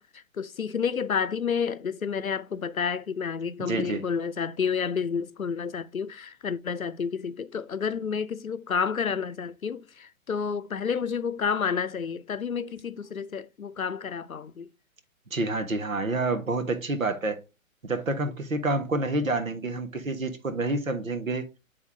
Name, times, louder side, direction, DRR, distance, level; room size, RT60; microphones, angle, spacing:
voice 1, 0.0-14.7, left 6 dB, 85° left, 0.6 m, -30 dB
voice 2, 3.6-4.0 15.3-17.4 17.8-21.5, right 2 dB, 75° right, 1.4 m, -28 dB
9.5 x 3.5 x 3.4 m
figure-of-eight pair, 120°, 41 cm